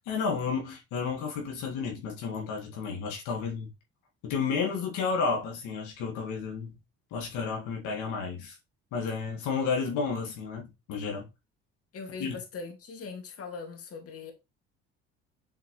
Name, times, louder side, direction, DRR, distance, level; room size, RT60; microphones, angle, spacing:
voice 1, 0.1-3.7 4.2-6.8 7.1-8.6 8.9-11.3 12.2-12.4, left 5 dB, 75° left, 2.1 m, -32 dB
voice 2, 11.9-14.3, left 4 dB, 50° left, 2.2 m, -40 dB
7.6 x 4.6 x 3.1 m
supercardioid pair, 85°, 30 cm